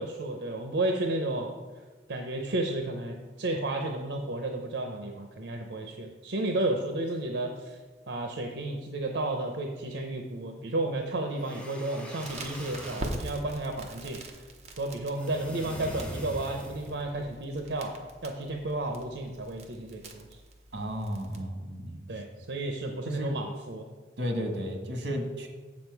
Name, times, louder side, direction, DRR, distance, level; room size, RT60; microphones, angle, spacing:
voice 1, 0.0-1.5 2.1-7.8 8.1-14.2 14.8-17.9 18.2-20.2 22.1-23.9, right 2 dB, 85° right, 3 dB, 0.7 m, -32 dB
sound 1, 11.3-13.1 15.2-17.1, equal, 5° left, 0.8 m, -42 dB
Crackle, 12.2-21.4, right 1 dB, 40° right, 0.9 m, -43 dB
voice 2, 20.7-22.0 23.0-23.4 24.2-25.5, equal, 70° right, 3 dB, 1.5 m, -33 dB
7.3 x 7.3 x 4.6 m, 1.3 s
head